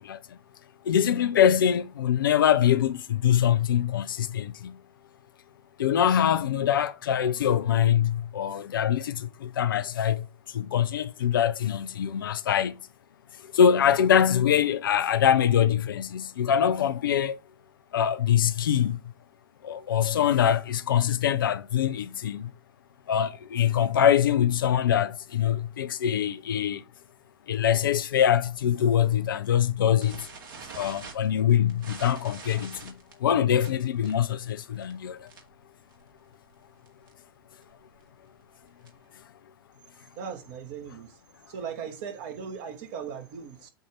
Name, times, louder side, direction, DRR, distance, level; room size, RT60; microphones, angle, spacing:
voice 1, 0.9-4.7 5.8-10.2 10.5-12.7 13.5-17.4 17.9-19.0 19.6-22.5 23.1-26.8 27.5-30.2 30.8-32.9 33.2-35.2, left 9 dB, 70° left, 0.6 m, -23 dB
sound 1, 30.0-35.6 35.9-36.2 36.5-36.6 36.9-37.1 37.6-39.2, right 5 dB, 65° right, 2.1 m, -45 dB
voice 2, 40.1-41.2 41.5-43.7, right 7 dB, 50° right, 1.5 m, -38 dB
8.2 x 2.8 x 4.9 m
figure-of-eight pair, 90°, 12 cm